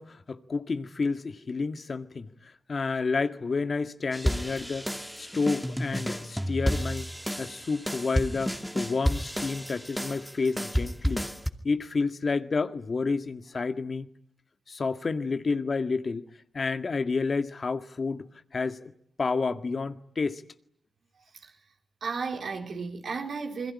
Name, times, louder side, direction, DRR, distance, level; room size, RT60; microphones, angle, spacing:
voice 1, 0.0-2.3 2.7-4.9 5.2-7.1 7.4-11.3 11.6-14.1 14.7-16.2 16.5-18.3 18.5-18.9 19.2-20.4, left 4 dB, 50° left, 1.8 m, -30 dB
sound 1, 4.1-11.5, equal, ahead, 2.5 m, -31 dB
voice 2, 22.0-23.7, right 5 dB, 65° right, 4.0 m, -34 dB
28.0 x 21.5 x 9.9 m
supercardioid pair, 45°, 0 cm